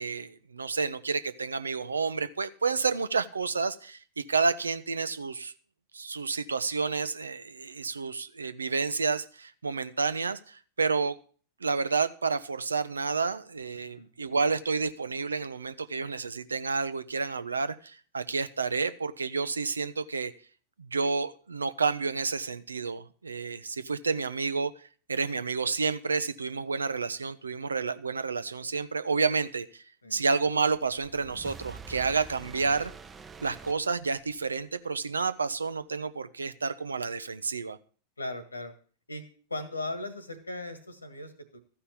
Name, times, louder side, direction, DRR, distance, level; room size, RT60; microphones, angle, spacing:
voice 1, 0.0-5.5 5.9-11.2 11.6-20.3 20.8-24.7 25.1-29.8 30.1-32.9 33.4-37.8, right 4 dB, 75° right, 13 dB, 0.7 m, -30 dB
sound 1, 30.8-34.5, right 4 dB, 15° right, 0.9 m, -46 dB
voice 2, 38.2-38.7 39.1-39.2 39.5-41.6, left 2 dB, 80° left, 12 dB, 1.8 m, -38 dB
14.0 x 5.6 x 8.3 m, 0.42 s
figure-of-eight pair, 90°, 0 cm